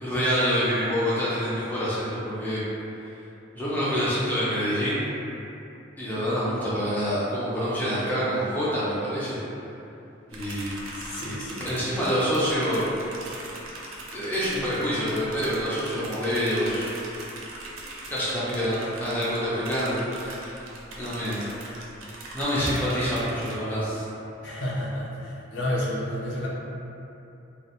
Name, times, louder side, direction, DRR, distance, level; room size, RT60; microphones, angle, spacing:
voice 1, 0.0-2.6 3.6-5.0 6.0-9.4 10.3-10.7 11.6-12.9 14.1-16.9 18.1-20.6 21.0-21.5 22.3-24.0, equal, 10° left, -10 dB, 0.4 m, -26 dB
sound 1, 10.3-23.5, right 2 dB, 80° right, 0.4 m, -41 dB
voice 2, 10.9-11.7 24.4-26.5, left 1 dB, 65° left, -6 dB, 0.5 m, -31 dB
2.4 x 2.0 x 2.8 m, 2.8 s
head